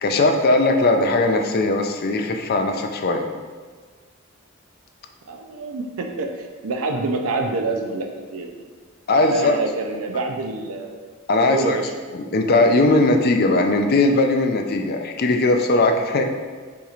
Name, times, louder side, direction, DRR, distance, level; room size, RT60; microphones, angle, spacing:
voice 1, 0.0-3.3 9.1-9.5 11.3-11.8 12.3-16.2, left 2 dB, 45° left, 4 dB, 0.4 m, -19 dB
voice 2, 5.3-8.5 9.2-11.0 11.4-11.9, right 3 dB, 85° right, 3 dB, 0.5 m, -27 dB
6.9 x 3.0 x 2.4 m, 1.5 s
head